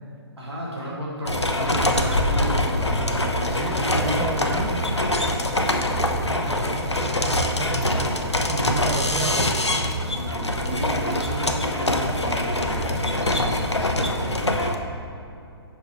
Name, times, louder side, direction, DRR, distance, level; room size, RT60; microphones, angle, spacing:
voice 1, 0.4-5.0 7.9-8.3 10.1-14.7, equal, 80° right, -5 dB, 1.7 m, -34 dB
sound 1, 1.2-14.7, left 1 dB, 90° left, 0.6 m, -24 dB
voice 2, 3.3-4.8 6.1-9.7, right 3 dB, 15° right, 3 dB, 0.5 m, -33 dB
5.4 x 5.3 x 5.2 m, 2.6 s
figure-of-eight pair, 130°, 14 cm